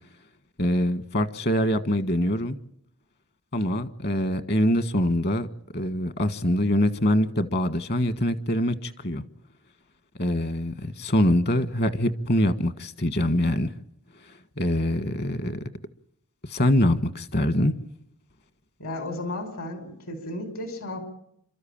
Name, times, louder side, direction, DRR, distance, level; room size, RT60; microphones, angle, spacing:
voice 1, 0.6-2.6 3.5-5.5 5.7-9.2 10.2-13.7 14.2-15.6 16.5-17.7, left 1 dB, 50° left, 1.5 m, -24 dB
voice 2, 18.8-21.0, left 1 dB, 70° left, 5.3 m, -34 dB
29.0 x 13.5 x 8.8 m
head